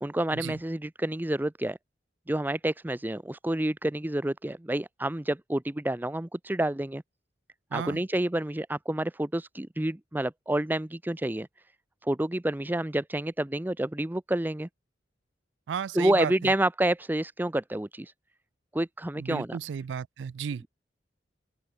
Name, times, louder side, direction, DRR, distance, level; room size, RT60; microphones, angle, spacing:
voice 1, 0.0-1.8 2.3-7.0 7.7-11.5 12.0-14.7 15.9-18.1 18.7-19.6, right 1 dB, 10° right, 0.6 m, -29 dB
voice 2, 7.7-8.0 15.7-16.5 19.2-20.6, right 7 dB, 75° right, 0.3 m, -34 dB
open air
head